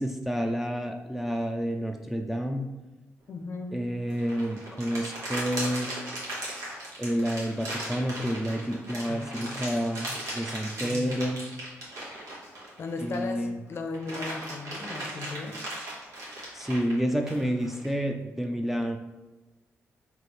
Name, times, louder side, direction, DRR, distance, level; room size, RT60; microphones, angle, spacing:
voice 1, 0.0-2.7 3.7-5.9 7.0-11.4 13.0-13.6 16.5-19.0, equal, 5° right, 3 dB, 0.3 m, -29 dB
voice 2, 3.3-3.8 9.1-9.8 10.3-11.3 12.8-15.6, left 3 dB, 50° left, 5 dB, 0.5 m, -37 dB
sound 1, 4.1-13.3 13.7-17.9, right 1 dB, 75° right, 1.3 m, -37 dB
4.2 x 2.7 x 3.2 m, 1.1 s
cardioid pair, 90°, 5 cm